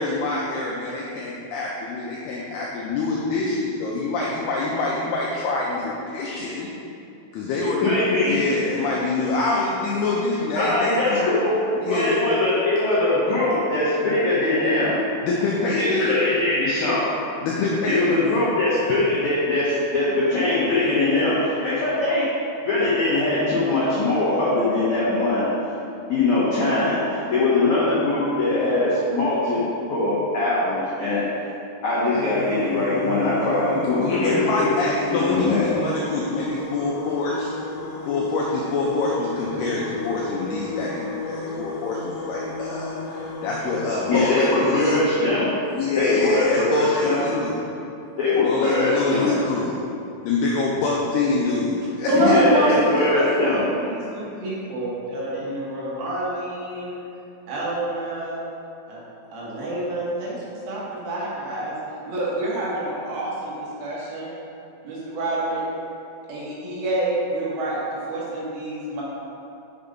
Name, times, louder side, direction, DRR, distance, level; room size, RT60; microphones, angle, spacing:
voice 1, 0.0-6.7 7.3-8.0 8.2-11.3 11.8-12.2 15.2-16.1 17.4-18.2 34.0-37.5 38.0-45.0 45.8-47.6 48.4-49.7 50.2-52.3 52.7-53.1, left 3 dB, 90° left, -4 dB, 2.3 m, -25 dB
voice 2, 7.8-8.4 10.6-11.6 11.9-15.0 15.8-17.1 17.9-22.2 22.6-25.5 26.1-29.6 29.9-31.3 31.8-34.7 35.1-35.7 44.1-45.6 46.0-47.3 48.2-49.4 52.1-53.7, left 2 dB, 70° left, -10 dB, 1.7 m, -21 dB
sound 1, 32.1-44.3, left 2 dB, 45° left, 2.1 m, -33 dB
voice 3, 52.1-57.0 57.5-58.4 58.9-59.0 59.3-61.8 62.1-64.3 64.8-65.6 66.3-69.0, right 1 dB, 70° right, -6 dB, 3.5 m, -27 dB
6.9 x 5.9 x 5.2 m, 2.7 s
omnidirectional pair, 5.5 m